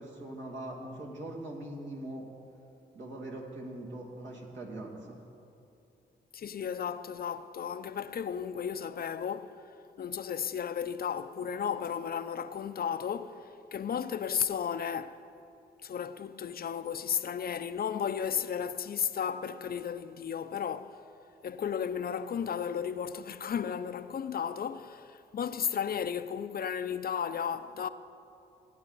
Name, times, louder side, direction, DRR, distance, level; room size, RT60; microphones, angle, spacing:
voice 1, 0.0-2.3 2.9-5.2, right 1 dB, 70° right, 2.5 m, -41 dB
voice 2, 6.3-9.6 10.0-15.2 15.8-21.0 21.4-27.9, left 8 dB, 50° left, 0.5 m, -34 dB
17.0 x 9.4 x 4.1 m
supercardioid pair, 55°, 20 cm